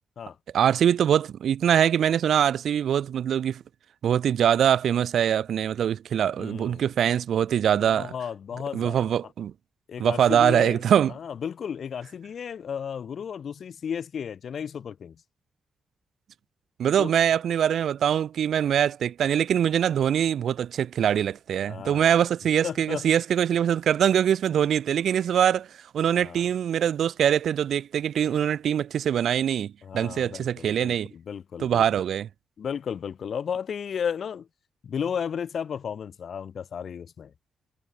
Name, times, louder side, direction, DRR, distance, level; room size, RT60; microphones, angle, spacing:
voice 1, 0.5-3.6 4.0-8.1 8.7-9.5 10.0-11.1 16.8-25.7 25.9-31.1 31.6-32.3, right 9 dB, 75° right, 0.7 m, -23 dB
voice 2, 6.3-6.9 7.8-9.1 9.9-15.2 17.0-17.1 21.7-22.2 22.6-23.1 26.1-26.4 29.8-31.8 32.6-34.5 34.8-37.3, left 7 dB, 60° left, 6.3 m, -34 dB
cardioid pair, 80°, 0 cm